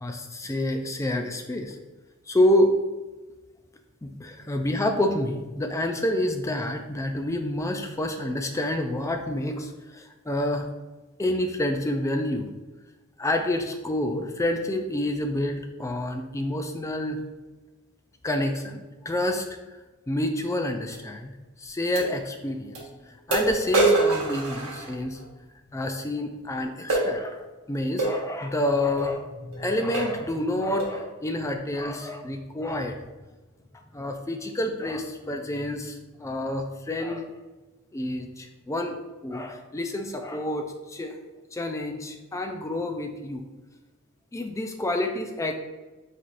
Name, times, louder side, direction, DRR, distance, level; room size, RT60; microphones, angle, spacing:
voice 1, 0.0-1.8 2.3-2.7 4.0-10.7 11.2-12.5 13.2-17.2 18.2-19.4 20.1-21.3 21.6-25.2 25.7-33.0 33.9-37.3 37.9-39.0 39.2-41.2 41.5-43.4 44.3-45.5, left 1 dB, 15° left, 5 dB, 0.4 m, -28 dB
sound 1, 20.9-21.0 21.9-22.1 22.7-22.8 23.3-25.3 26.9-27.1 28.0-28.2 29.0-29.1 29.5-29.6 29.9-30.2 30.8-31.0, right 2 dB, 70° right, 1.2 m, -25 dB
4.6 x 4.1 x 2.5 m, 1.2 s
head